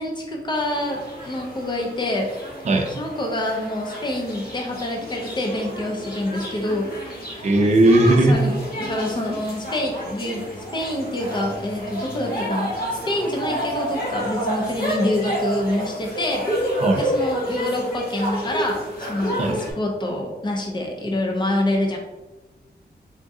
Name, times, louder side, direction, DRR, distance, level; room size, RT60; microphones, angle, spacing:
voice 1, 0.0-2.3 3.0-6.9 7.3-7.5 8.0-16.4 16.9-22.0, left 1 dB, 25° left, 1 dB, 0.6 m, -26 dB
sound 1, 0.5-19.7, equal, 60° left, 1.3 m, -30 dB
voice 2, 7.4-8.4 16.8-17.0 19.4-19.6, right 2 dB, 40° right, 2 dB, 0.5 m, -17 dB
3.6 x 3.6 x 2.6 m, 1.1 s
wide cardioid pair, 165°, 17 cm